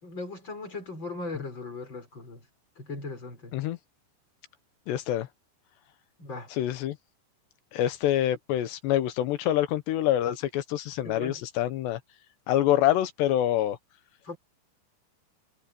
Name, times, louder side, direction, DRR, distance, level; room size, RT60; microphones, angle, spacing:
voice 1, 0.0-2.4 2.8-3.6 6.2-6.5 11.0-11.4 14.3-14.4, left 3 dB, 25° left, 5.4 m, -38 dB
voice 2, 4.9-5.3 6.5-7.0 7.7-12.0 12.5-13.8, left 12 dB, 70° left, 2.8 m, -26 dB
omnidirectional pair, 5.8 m